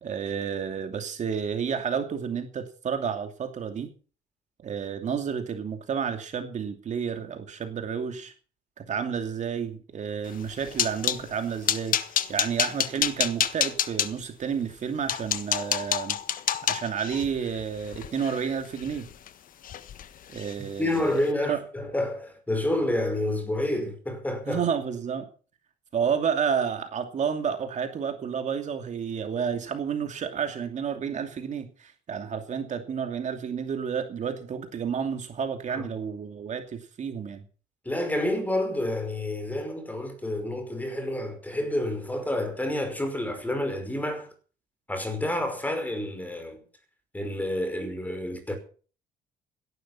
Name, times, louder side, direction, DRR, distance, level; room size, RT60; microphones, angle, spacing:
voice 1, 0.0-3.9 4.6-8.3 8.8-16.2 16.6-19.1 20.3-21.1 21.4-21.6 24.5-25.3 25.9-37.4, right 7 dB, 45° right, 2.7 m, -30 dB
sound 1, 10.3-11.2 11.7-14.1 14.7-14.8 15.1-19.3 19.6-20.1 20.3-20.5 20.9-21.1, left 10 dB, 55° left, 1.4 m, -28 dB
voice 2, 20.8-24.7 35.7-35.9 37.9-44.3 44.9-46.6 47.1-48.6, left 1 dB, 10° left, 5.3 m, -29 dB
17.0 x 11.5 x 5.8 m
cardioid pair, 110°, 17 cm